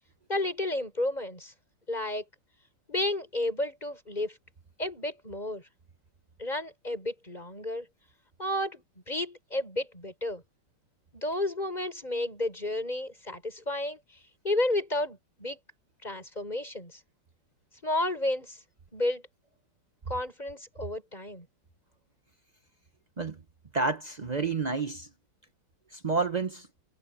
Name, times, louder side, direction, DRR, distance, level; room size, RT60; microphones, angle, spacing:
voice 1, 0.3-1.5 1.9-2.2 2.9-4.3 4.8-5.6 6.4-7.9 8.4-10.4 11.1-14.0 14.4-15.6 16.0-17.0 17.8-18.6 18.9-19.2 20.1-21.5, left 1 dB, 20° left, 6.3 m, -32 dB
voice 2, 23.7-25.1 25.9-26.7, right 4 dB, 60° right, 0.4 m, -29 dB
omnidirectional pair, 2.2 m